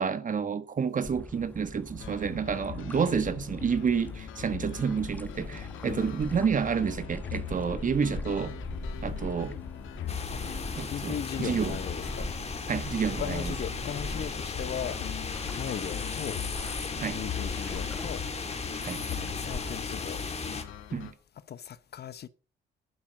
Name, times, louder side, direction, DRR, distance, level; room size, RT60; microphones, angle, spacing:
voice 1, 0.0-8.5 9.0-9.5 10.8-11.8 12.7-13.5 17.0-17.2 18.8-19.0 20.9-21.1, right 6 dB, 40° right, 1.4 m, -29 dB
sound 1, 1.0-19.8, left 1 dB, 10° left, 1.1 m, -42 dB
sound 2, 2.0-21.1, left 9 dB, 80° left, 1.9 m, -41 dB
voice 2, 5.8-6.1 10.3-10.4 10.9-12.3 13.1-15.0 15.6-16.4 17.1-18.2 19.1-20.2 21.5-22.3, left 9 dB, 55° left, 0.9 m, -37 dB
sound 3, 10.1-20.6, left 4 dB, 30° left, 2.2 m, -36 dB
11.0 x 8.5 x 6.5 m
cardioid pair, 90°, 20 cm